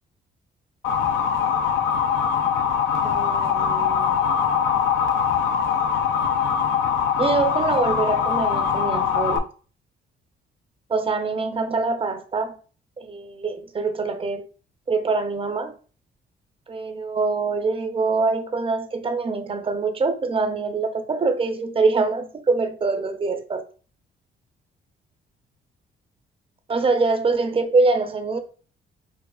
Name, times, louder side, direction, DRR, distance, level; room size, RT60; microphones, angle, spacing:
Motor vehicle (road) / Siren, 0.8-9.4, left 7 dB, 75° left, 0.5 m, -22 dB
voice 1, 3.0-4.3 7.2-9.5 10.9-12.6 13.0-14.5 14.9-15.7 16.7-23.6 26.7-28.4, right 3 dB, 30° right, 0.6 m, -24 dB
4.6 x 2.3 x 2.3 m
cardioid pair, 90°, 20 cm